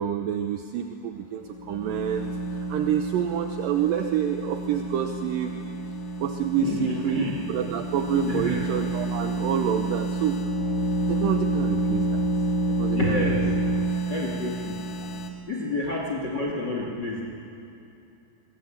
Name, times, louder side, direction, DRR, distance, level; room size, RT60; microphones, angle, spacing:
voice 1, 0.0-5.6 6.2-10.4 11.1-12.3 12.7-13.3, right 9 dB, 75° right, 6 dB, 2.4 m, -28 dB
sound 1, 1.4-15.3, right 2 dB, 65° left, 3.2 m, -29 dB
voice 2, 6.6-7.3 8.2-8.6 12.9-13.6 14.1-14.8 15.5-17.3, left 2 dB, 30° left, -1 dB, 2.8 m, -29 dB
28.0 x 22.0 x 8.8 m, 2.8 s
omnidirectional pair, 4.3 m